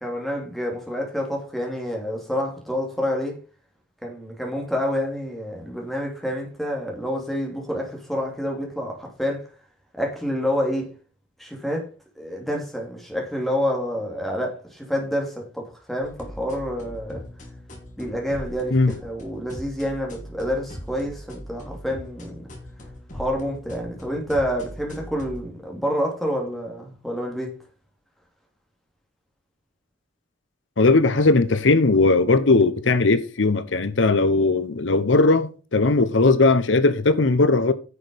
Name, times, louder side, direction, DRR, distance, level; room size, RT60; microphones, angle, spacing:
voice 1, 0.0-3.4 4.0-9.5 10.0-10.9 11.4-11.9 12.2-17.2 18.0-22.5 23.1-27.5, equal, ahead, 2.6 m, -28 dB
sound 1, 16.0-25.4, equal, 40° left, 2.7 m, -40 dB
voice 2, 30.8-37.7, left 3 dB, 80° left, 0.9 m, -18 dB
10.0 x 6.4 x 5.1 m
head